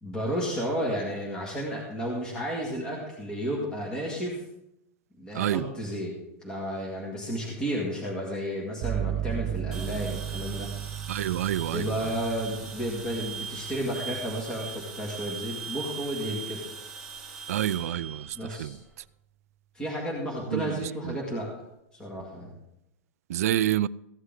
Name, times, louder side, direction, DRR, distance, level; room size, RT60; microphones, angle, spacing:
voice 1, 0.0-4.4 5.2-6.1 6.4-10.7 11.7-16.7 18.4-18.8 19.7-21.5 21.9-22.5, equal, 10° left, 1.7 m, -32 dB
voice 2, 5.3-5.7 11.1-12.1 17.5-18.8 20.5-21.2 23.3-23.9, right 12 dB, 85° right, 0.4 m, -28 dB
sound 1, 8.8-16.5, right 11 dB, 30° right, 0.5 m, -36 dB
sound 2, 9.7-19.0, right 5 dB, 5° right, 1.5 m, -40 dB
15.0 x 9.7 x 3.8 m
supercardioid pair, 175°, 8 cm